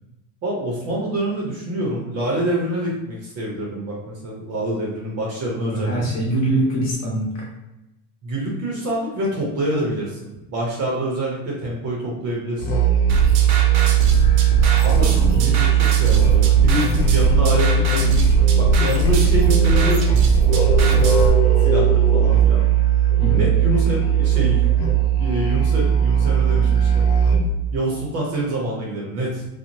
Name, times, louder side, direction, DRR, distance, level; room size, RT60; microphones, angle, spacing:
voice 1, 0.4-6.2 8.2-12.7 14.8-20.2 21.6-22.6 23.3-24.6 25.2-27.1 27.7-29.4, right 1 dB, 35° right, -3 dB, 0.7 m, -26 dB
voice 2, 5.5-7.4 15.3-15.5 23.2-23.4, right 1 dB, 35° left, -5 dB, 1.1 m, -23 dB
Musical instrument, 12.6-27.6, right 8 dB, 75° left, 0.8 m, -17 dB
sound 1, 13.1-21.3, right 2 dB, 65° right, 0.7 m, -23 dB
3.0 x 2.1 x 2.6 m, 0.97 s
supercardioid pair, 155°, 44 cm